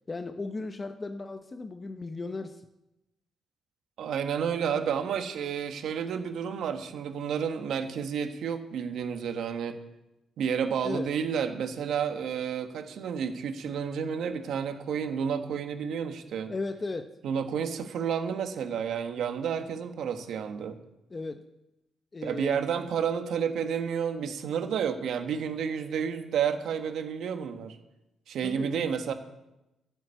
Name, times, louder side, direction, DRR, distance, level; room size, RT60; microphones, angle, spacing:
voice 1, 0.1-2.7 4.7-4.9 10.8-11.1 16.5-17.1 21.1-21.4 22.1-22.6 28.4-28.9, left 3 dB, 30° left, 8 dB, 0.8 m, -36 dB
voice 2, 4.0-9.8 10.4-16.5 17.2-20.8 22.2-27.8 28.3-29.1, right 7 dB, 70° right, 6 dB, 1.4 m, -31 dB
11.5 x 8.4 x 8.3 m, 0.94 s
cardioid pair, 90°, 0 cm